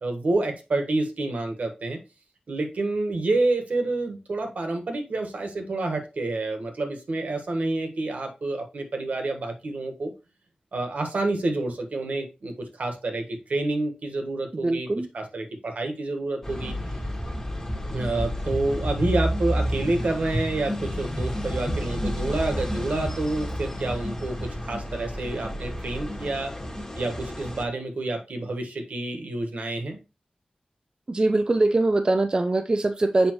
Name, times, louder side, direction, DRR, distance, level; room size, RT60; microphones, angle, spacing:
voice 1, 0.0-2.0 2.5-10.1 10.7-14.9 15.1-16.7 17.9-26.5 27.0-30.0, right 2 dB, 75° right, 1.4 m, -28 dB
voice 2, 14.6-15.1 31.1-33.3, right 2 dB, 35° right, 0.5 m, -22 dB
sound 1, 16.4-27.6, equal, 20° left, 1.5 m, -30 dB
7.0 x 5.1 x 3.0 m
wide cardioid pair, 90°, 3 cm